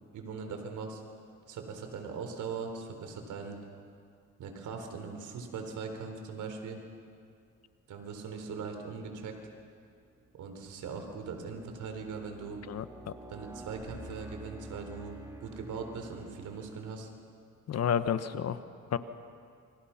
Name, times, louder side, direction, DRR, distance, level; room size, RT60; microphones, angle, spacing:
voice 1, 0.1-1.0 1.5-3.6 4.4-6.8 7.9-9.4 10.3-12.6 13.3-17.1, right 5 dB, 80° right, 5 dB, 4.1 m, -40 dB
sound 1, 9.4-9.6 10.2-17.1, right 1 dB, 10° right, 3.3 m, -50 dB
voice 2, 12.7-13.1 17.7-18.6 18.9-19.0, left 8 dB, 55° left, 11 dB, 1.2 m, -30 dB
28.5 x 26.0 x 5.9 m, 2.4 s
cardioid pair, 90°, 30 cm